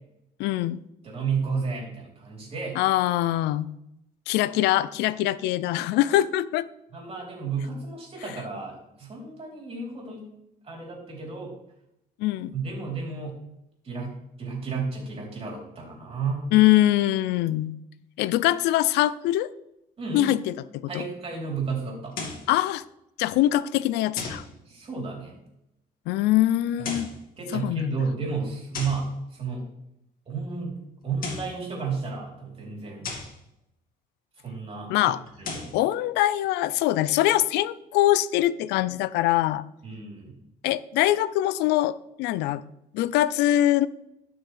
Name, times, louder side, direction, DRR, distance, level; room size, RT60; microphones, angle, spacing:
voice 1, 0.4-0.8 2.8-3.7 4.3-6.7 12.2-12.5 16.5-17.8 18.2-19.5 20.1-20.4 20.7-21.0 22.5-22.8 23.2-24.4 26.1-27.1 27.5-28.0 34.9-35.2 35.7-39.6 40.6-42.6 42.9-43.9, left 14 dB, 85° left, 18 dB, 0.4 m, -23 dB
voice 2, 1.0-2.8 6.9-10.3 10.6-11.5 12.5-13.4 13.8-16.5 20.0-20.4 20.9-22.2 24.7-25.4 26.8-26.9 27.4-29.7 30.3-33.1 34.4-34.9 35.4-35.8 39.8-40.3, right 4 dB, 35° right, -2 dB, 3.6 m, -32 dB
sound 1, 22.1-22.5 24.2-24.5 26.7-27.2 28.7-29.1 31.0-31.6 33.0-33.4 35.3-35.8, left 4 dB, 60° left, 2.2 m, -35 dB
12.5 x 6.3 x 3.4 m, 0.84 s
cardioid pair, 110°, 17 cm